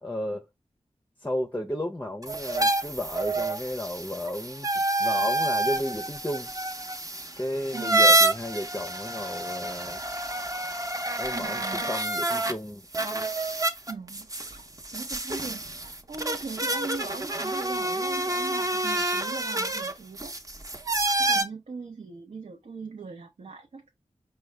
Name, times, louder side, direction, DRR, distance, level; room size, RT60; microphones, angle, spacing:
voice 1, 0.0-0.5 1.2-6.5 7.4-10.0 11.2-12.8, left 1 dB, 15° left, 0.5 m, -33 dB
sound 1, 2.2-12.5 12.9-21.4, right 2 dB, 30° right, 0.7 m, -28 dB
voice 2, 7.7-8.1 11.3-11.9 13.9-20.3 21.2-23.9, right 4 dB, 65° right, 0.6 m, -40 dB
4.6 x 2.2 x 3.2 m
cardioid pair, 50°, 12 cm